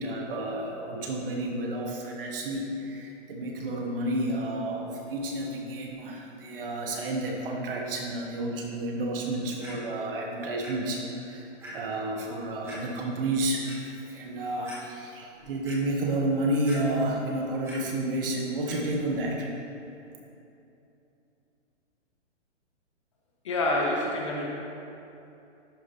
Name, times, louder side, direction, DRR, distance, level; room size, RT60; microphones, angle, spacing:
voice 1, 0.0-13.7 14.0-19.5, right 1 dB, 45° right, 0 dB, 1.1 m, -31 dB
Clock, 9.6-9.7 10.6-10.7 11.1-11.2 11.6-11.7 12.6-12.8 13.4-13.7 14.3-14.4 14.6-14.8 15.2-15.8 16.6-17.2 17.4-17.8 18.6-18.8 19.5-19.6, equal, 5° right, 1.2 m, -44 dB
voice 2, 23.4-24.5, left 1 dB, 25° left, -2 dB, 0.5 m, -27 dB
11.0 x 4.6 x 2.9 m, 2.8 s
hypercardioid pair, 155°, 37 cm